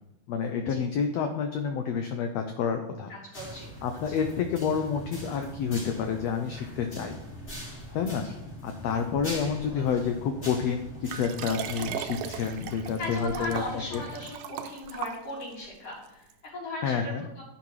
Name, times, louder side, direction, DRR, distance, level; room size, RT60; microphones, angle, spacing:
voice 1, 0.3-3.1 3.8-7.1 7.9-8.3 8.6-13.6 13.9-14.0 16.8-17.3, left 6 dB, 80° left, 6 dB, 1.5 m, -29 dB
voice 2, 3.1-3.7 8.2-8.4 9.7-9.8 13.0-17.4, left 1 dB, 50° left, -7 dB, 4.7 m, -38 dB
sound 1, 3.3-14.2, equal, 25° left, 4.0 m, -42 dB
Liquid, 11.1-15.7 16.3-16.4, right 10 dB, 85° right, 2.2 m, -38 dB
10.5 x 9.7 x 3.1 m, 0.88 s
omnidirectional pair, 3.7 m